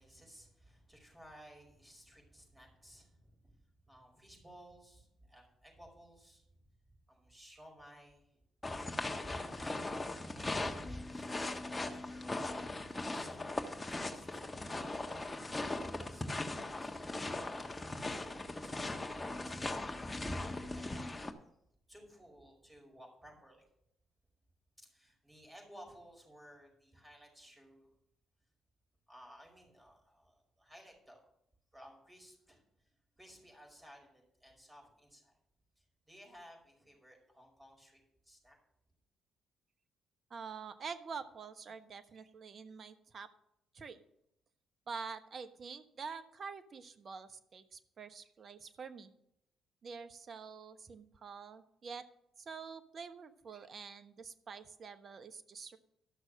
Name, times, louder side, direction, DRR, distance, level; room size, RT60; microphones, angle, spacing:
voice 1, 0.0-6.5 7.1-8.4 9.3-12.6 12.9-14.4 15.6-19.8 20.5-21.4 21.9-23.7 24.8-27.9 29.1-31.2 31.7-35.3 35.8-38.6, equal, 15° right, 0 dB, 5.2 m, -58 dB
sound 1, 8.6-21.3, left 2 dB, 25° left, 1.3 m, -39 dB
voice 2, 40.3-43.3 43.7-44.0 44.9-49.1 49.8-52.0 52.4-55.8, right 5 dB, 50° right, 10 dB, 0.9 m, -47 dB
13.0 x 6.3 x 6.4 m, 0.76 s
hypercardioid pair, 45°, 0 cm